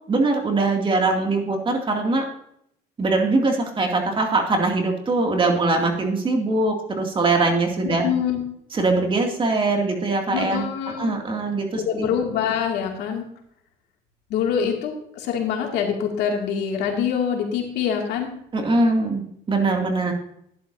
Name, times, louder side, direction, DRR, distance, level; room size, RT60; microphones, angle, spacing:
voice 1, 0.1-2.2 3.0-8.1 8.7-10.7 11.0-12.1 18.5-20.1, right 3 dB, 30° right, 2 dB, 2.4 m, -22 dB
voice 2, 7.8-8.4 10.3-11.1 11.8-13.3 14.3-18.3, left 7 dB, 85° left, 1 dB, 2.4 m, -25 dB
11.5 x 11.0 x 2.7 m, 0.72 s
cardioid pair, 110°, 17 cm